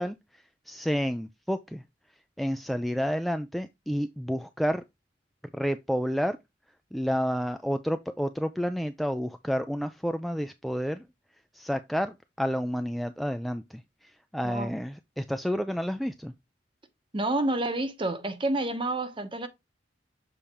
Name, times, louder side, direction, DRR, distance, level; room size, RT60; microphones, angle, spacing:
voice 1, 0.0-1.8 2.4-4.8 5.5-6.4 6.9-11.1 11.5-16.3, equal, ahead, 0.3 m, -30 dB
voice 2, 14.4-14.8 17.1-19.5, right 2 dB, 25° right, 1.0 m, -29 dB
7.0 x 4.3 x 3.5 m
head